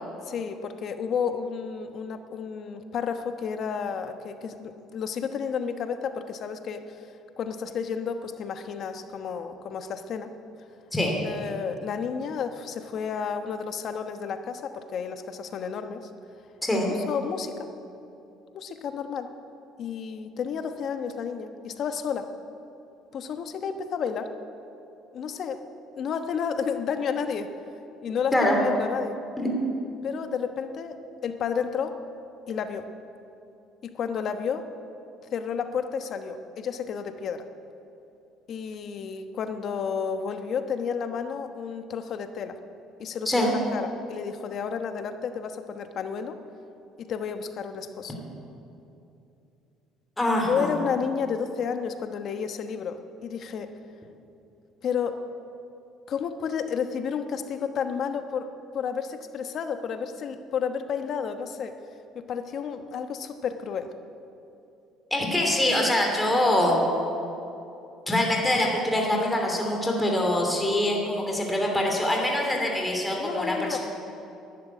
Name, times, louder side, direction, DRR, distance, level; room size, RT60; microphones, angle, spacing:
voice 1, 0.2-7.0 7.4-10.3 11.2-16.1 16.7-17.7 18.5-19.3 19.8-22.3 23.1-24.3 25.1-25.6 25.9-27.5 28.0-29.2 30.0-32.0 32.5-32.9 33.8-34.7 35.3-37.5 38.5-42.6 43.0-46.4 47.0-48.2 50.5-53.7 54.8-55.2 56.1-58.5 58.7-61.8 62.1-63.9 73.2-73.8, left 6 dB, 55° left, 8 dB, 1.1 m, -31 dB
voice 2, 50.2-50.7 65.1-66.8 68.1-73.8, left 1 dB, 10° left, 0 dB, 3.0 m, -24 dB
11.5 x 11.0 x 9.2 m, 2.8 s
cardioid pair, 100°, 0 cm